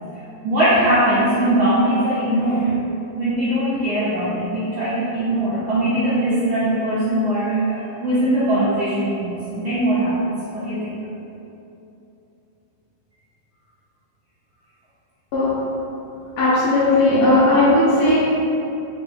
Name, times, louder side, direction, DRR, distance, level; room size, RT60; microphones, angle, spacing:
voice 1, 0.1-2.7 3.1-10.2 10.5-10.9 17.1-17.3, right 1 dB, 70° right, -12 dB, 1.2 m, -21 dB
voice 2, 16.4-18.2, left 2 dB, 70° left, -10 dB, 1.6 m, -16 dB
5.1 x 2.8 x 3.4 m, 2.8 s
omnidirectional pair, 3.5 m